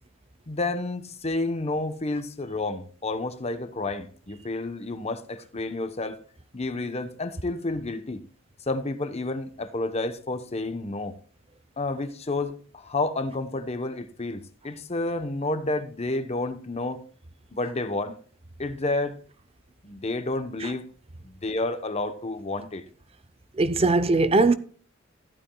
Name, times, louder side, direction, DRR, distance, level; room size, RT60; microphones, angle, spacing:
voice 1, 0.5-6.2 6.5-8.2 8.7-11.2 11.8-17.0 17.5-18.1 18.6-19.2 19.8-20.9 21.2-22.8, left 2 dB, 35° left, 0.9 m, -30 dB
voice 2, 23.6-24.5, right 3 dB, 30° right, 0.6 m, -20 dB
14.0 x 12.0 x 2.3 m
head